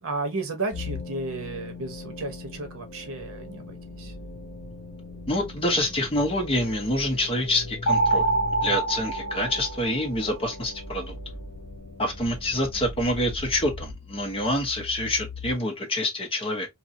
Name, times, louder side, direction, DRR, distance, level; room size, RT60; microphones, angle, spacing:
voice 1, 0.0-4.1, right 3 dB, 70° right, 1.0 m, -33 dB
sound 1, 0.7-15.6, left 2 dB, 55° left, 1.0 m, -39 dB
voice 2, 5.3-8.2 8.6-11.1 12.0-16.7, left 1 dB, 25° left, 1.0 m, -26 dB
sound 2, 7.9-10.3, right 2 dB, 85° left, 0.9 m, -25 dB
2.8 x 2.6 x 2.7 m
head